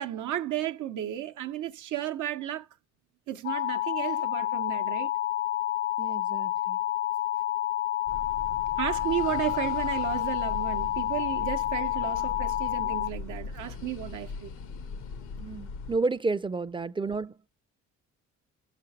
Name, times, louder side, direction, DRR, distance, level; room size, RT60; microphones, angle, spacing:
voice 1, 0.0-2.7 3.3-5.1 8.8-14.5, right 12 dB, 75° right, 0.7 m, -33 dB
sound 1, 3.4-13.1, left 13 dB, 45° left, 0.5 m, -29 dB
voice 2, 6.0-6.8 15.4-17.5, right 3 dB, 15° right, 0.4 m, -31 dB
sound 2, 8.1-16.0, left 4 dB, 85° left, 1.0 m, -40 dB
6.3 x 5.0 x 4.6 m
cardioid pair, 90°, 30 cm